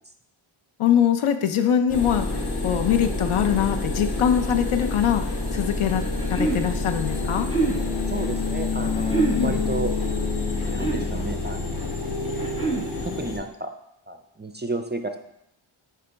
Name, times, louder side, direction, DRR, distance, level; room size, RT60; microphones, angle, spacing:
voice 1, 0.8-7.5 9.3-9.6, left 9 dB, 85° left, 8 dB, 0.6 m, -23 dB
sound 1, 1.9-13.4, left 3 dB, 55° left, 1.1 m, -27 dB
sound 2, 5.9-6.6 7.3-7.8 9.0-9.4 10.5-11.1 12.2-12.9, right 4 dB, 10° left, 1.4 m, -26 dB
voice 2, 8.1-9.9 10.7-11.8 13.0-13.7 14.1-15.2, right 3 dB, 25° right, 7 dB, 0.3 m, -32 dB
6.8 x 4.8 x 3.4 m, 0.79 s
wide cardioid pair, 100°, 49 cm